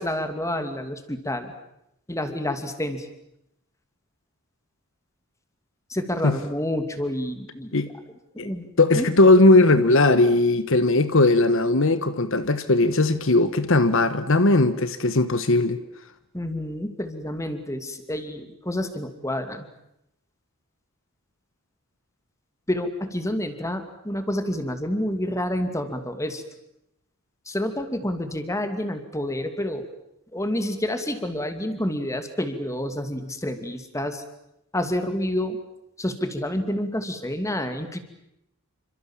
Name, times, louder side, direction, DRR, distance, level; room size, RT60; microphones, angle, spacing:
voice 1, 0.0-1.5 2.1-3.1 5.9-7.9 8.3-8.7 9.0-9.1 16.3-19.7 22.7-26.4 27.5-29.9 30.3-34.2 34.7-35.6 36.0-38.0, left 1 dB, 15° left, 2.6 m, -28 dB
voice 2, 8.8-15.8, left 2 dB, 65° left, 1.2 m, -18 dB
28.5 x 26.0 x 7.4 m
head